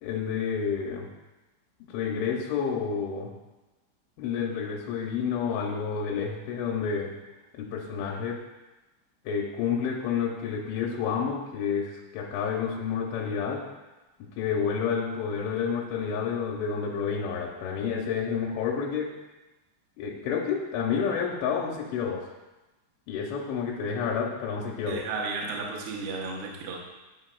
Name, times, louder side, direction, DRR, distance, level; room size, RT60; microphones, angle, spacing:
voice 1, 0.0-1.1 1.8-3.3 4.2-7.1 7.5-8.4 9.3-13.6 14.4-19.1 20.0-22.3 23.1-25.0, left 6 dB, 85° left, -2 dB, 3.0 m, -29 dB
voice 2, 24.9-26.8, right 4 dB, 80° right, -1 dB, 2.3 m, -33 dB
11.0 x 4.7 x 2.3 m, 1.1 s
omnidirectional pair, 5.7 m